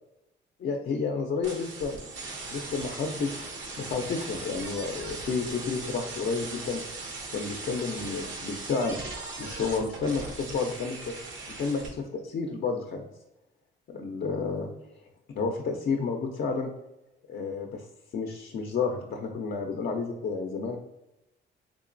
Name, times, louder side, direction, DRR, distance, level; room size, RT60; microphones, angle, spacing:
voice 1, 0.6-2.0 2.5-6.8 7.3-9.1 9.4-11.2 11.6-13.0 13.9-14.7 15.4-16.7 17.3-17.9 18.1-20.8, left 4 dB, 50° left, 2 dB, 0.5 m, -31 dB
sound 1, 1.4-11.9, right 3 dB, 75° right, 0.8 m, -39 dB
3.6 x 2.9 x 2.5 m, 0.91 s
cardioid pair, 90°, 20 cm